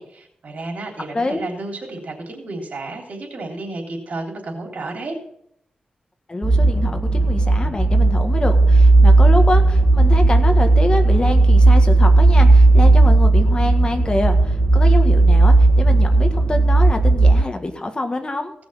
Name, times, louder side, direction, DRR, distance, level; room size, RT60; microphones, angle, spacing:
voice 1, 0.0-5.2, right 2 dB, 65° right, 1 dB, 3.3 m, -32 dB
voice 2, 6.3-18.5, left 2 dB, 35° left, 5 dB, 1.8 m, -25 dB
sound 1, 6.4-17.4, right 2 dB, 35° right, 1.5 m, -14 dB
17.0 x 6.2 x 5.7 m, 0.72 s
cardioid pair, 75°, 3 cm